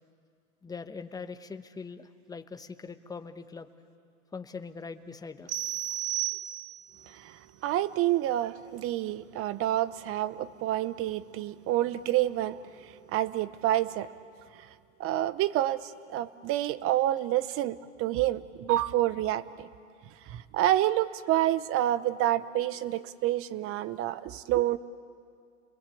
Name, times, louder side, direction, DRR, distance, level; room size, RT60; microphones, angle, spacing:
voice 1, 0.6-3.7 4.3-5.8 11.7-11.8, left 5 dB, 10° left, 9 dB, 1.0 m, -42 dB
sound 1, 5.5-7.0, right 14 dB, 85° right, 1.2 m, -33 dB
voice 2, 7.1-12.6 13.1-14.1 15.0-19.7 20.3-24.8, right 13 dB, 35° right, 15 dB, 0.9 m, -28 dB
29.5 x 21.5 x 8.5 m, 2.3 s
hypercardioid pair, 120°, 40 cm